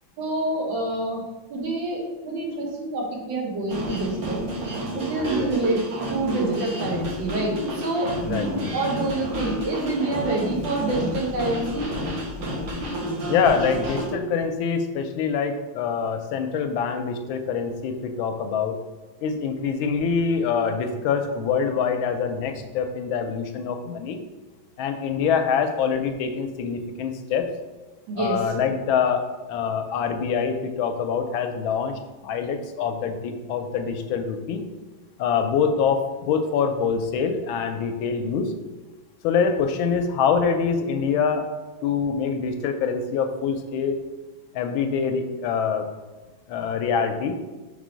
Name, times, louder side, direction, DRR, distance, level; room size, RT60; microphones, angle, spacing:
voice 1, 0.2-1.2 1.5-4.4 4.9-5.8 6.1-11.9 28.1-28.4, right 2 dB, 65° right, -1 dB, 1.8 m, -27 dB
sound 1, 3.7-14.1, right 1 dB, 90° right, 2.1 m, -30 dB
voice 2, 13.3-18.7 19.2-24.2 24.8-27.5 28.2-29.2 29.5-34.6 35.2-38.5 39.2-41.5 41.8-44.0 44.5-45.8 46.5-47.4, left 6 dB, 80° left, 6 dB, 1.3 m, -25 dB
5.4 x 3.5 x 5.0 m, 1.2 s
omnidirectional pair, 2.3 m